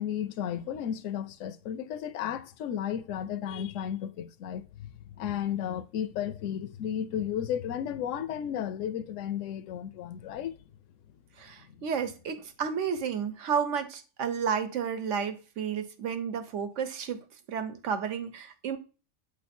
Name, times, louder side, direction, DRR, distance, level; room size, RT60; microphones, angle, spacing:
voice 1, 0.0-10.6 11.7-11.8, left 9 dB, 70° left, 0.9 m, -34 dB
voice 2, 11.4-18.8, right 7 dB, 65° right, 1.0 m, -32 dB
8.6 x 3.2 x 4.2 m
omnidirectional pair, 1.5 m